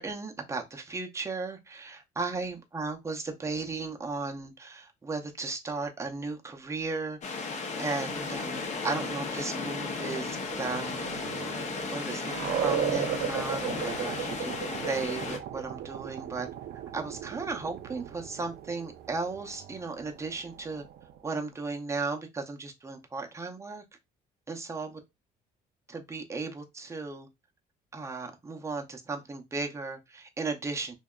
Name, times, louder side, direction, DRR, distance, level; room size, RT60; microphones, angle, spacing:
voice 1, 0.0-7.2 7.8-11.0 11.5-14.5 14.8-16.5 16.9-20.8 21.2-23.8 24.5-25.0 25.9-27.3 27.9-31.0, right 3 dB, 15° right, 0.5 m, -35 dB
sound 1, 7.2-15.4, left 4 dB, 45° left, 0.6 m, -35 dB
sound 2, 9.8-21.3, right 8 dB, 65° right, 0.4 m, -36 dB
2.6 x 2.2 x 2.3 m
cardioid pair, 110°, 17 cm